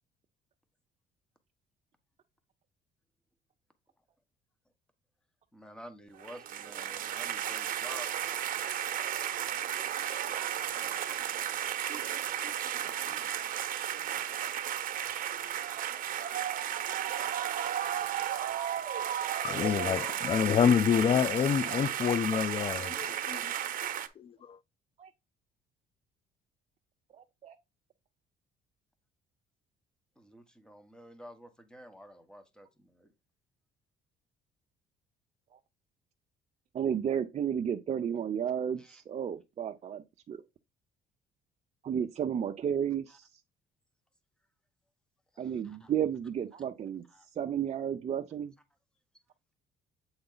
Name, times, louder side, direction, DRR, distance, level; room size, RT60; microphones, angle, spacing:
voice 1, 5.5-9.0 30.2-33.1 38.8-39.0 43.1-43.2 45.3-45.9 47.1-47.3, equal, 5° left, 1.2 m, -51 dB
sound 1, 6.2-24.1, right 10 dB, 55° right, 1.0 m, -34 dB
voice 2, 19.4-23.5 23.8-23.9 24.2-24.6, left 8 dB, 35° left, 0.3 m, -27 dB
voice 3, 27.2-27.6 36.7-40.4 41.8-43.3 45.4-47.1 47.3-48.5, right 8 dB, 40° right, 0.6 m, -33 dB
7.9 x 3.9 x 3.9 m
cardioid pair, 110°, 17 cm